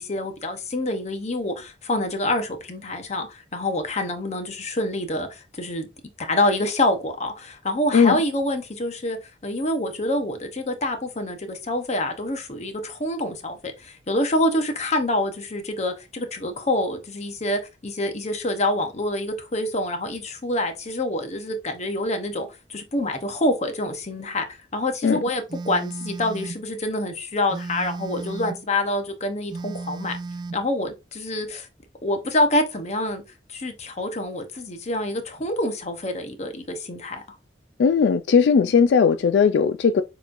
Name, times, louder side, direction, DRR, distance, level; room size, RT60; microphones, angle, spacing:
voice 1, 0.0-5.9 6.2-9.2 9.4-24.5 24.7-30.2 30.5-31.7 32.0-33.2 33.5-37.2, left 1 dB, 40° left, 0.9 m, -26 dB
Telephone, 25.5-26.6 27.5-28.7 29.5-30.7, right 3 dB, 25° right, 0.3 m, -34 dB
voice 2, 37.8-40.0, left 6 dB, 75° left, 0.3 m, -18 dB
6.6 x 3.1 x 2.5 m
head